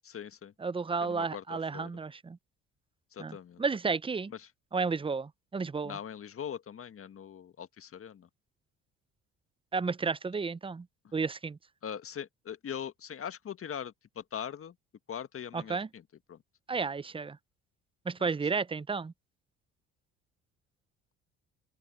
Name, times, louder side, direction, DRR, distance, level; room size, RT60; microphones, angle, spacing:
voice 1, 0.0-0.5 1.0-1.9 3.1-3.6 4.3-4.5 5.8-8.3 11.0-11.1 11.8-14.7 15.1-16.0 16.3-16.4, left 8 dB, 45° left, 1.7 m, -41 dB
voice 2, 0.6-2.4 3.2-4.3 4.7-6.0 9.7-10.9 11.1-11.6 15.5-15.9 16.7-17.4 18.0-19.1, right 4 dB, 15° right, 0.7 m, -32 dB
open air
hypercardioid pair, 65°, 31 cm